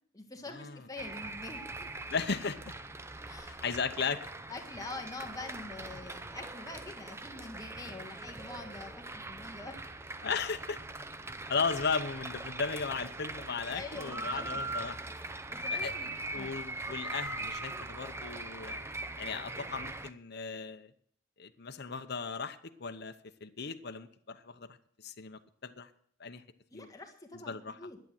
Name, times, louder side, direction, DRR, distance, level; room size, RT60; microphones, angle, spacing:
voice 1, 0.1-1.9 3.2-3.6 4.5-9.8 13.6-14.6 15.5-16.5 16.8-16.9 26.7-28.0, left 3 dB, 15° left, 3 dB, 1.7 m, -45 dB
sound 1, 1.0-20.1, right 2 dB, 15° right, 0.6 m, -41 dB
voice 2, 2.1-2.6 3.5-4.2 10.2-10.8 11.5-15.0 15.5-15.9 16.3-18.8 19.2-20.9 21.4-23.1 23.4-24.7 25.0-25.9 26.2-26.4 26.7-26.9 27.5-27.8, left 5 dB, 55° left, 7 dB, 0.8 m, -36 dB
11.5 x 8.4 x 7.7 m, 0.62 s
head